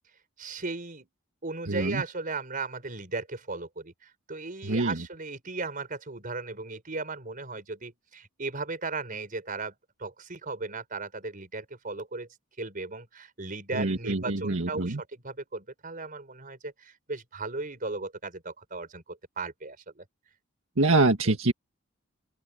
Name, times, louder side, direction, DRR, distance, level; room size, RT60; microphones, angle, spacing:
voice 1, 0.4-1.1 1.4-12.3 12.6-20.0 21.3-21.4, right 3 dB, 45° right, 4.6 m, -36 dB
voice 2, 1.7-2.0 4.6-5.0 13.7-15.0 20.8-21.5, right 2 dB, 75° right, 1.8 m, -25 dB
open air
head